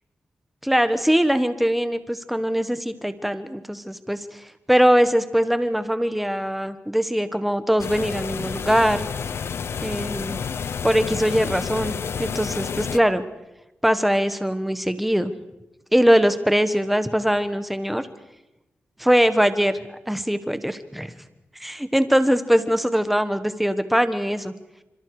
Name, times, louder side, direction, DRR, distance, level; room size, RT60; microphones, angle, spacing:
voice 1, 0.6-9.1 9.8-10.4 10.8-13.2 13.8-15.3 15.9-18.1 19.0-19.8 20.1-21.1 21.6-24.5, equal, 5° right, 11 dB, 1.2 m, -21 dB
sound 1, 7.8-13.0, left 6 dB, 75° left, 0.7 m, -30 dB
27.5 x 26.0 x 4.8 m, 0.96 s
wide cardioid pair, 160°, 4 cm